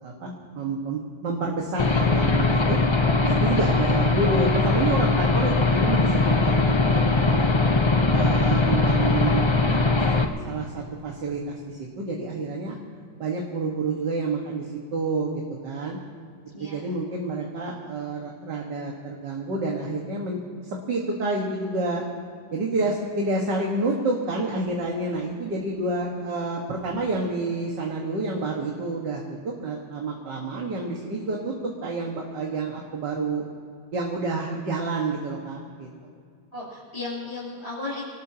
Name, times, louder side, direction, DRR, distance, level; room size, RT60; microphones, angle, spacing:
voice 1, 0.0-2.8 3.2-6.6 6.9-7.5 8.1-9.8 10.1-12.8 13.2-14.7 14.9-16.0 16.6-22.0 22.5-33.4 33.9-36.1, right 3 dB, 70° right, -2 dB, 2.3 m, -29 dB
Aircraft / Engine, 1.8-10.2, left 3 dB, 40° left, 0.4 m, -21 dB
voice 2, 16.5-16.9 36.5-38.1, left 2 dB, 20° left, -9 dB, 3.2 m, -35 dB
25.5 x 18.5 x 2.9 m, 2.2 s
omnidirectional pair, 2.0 m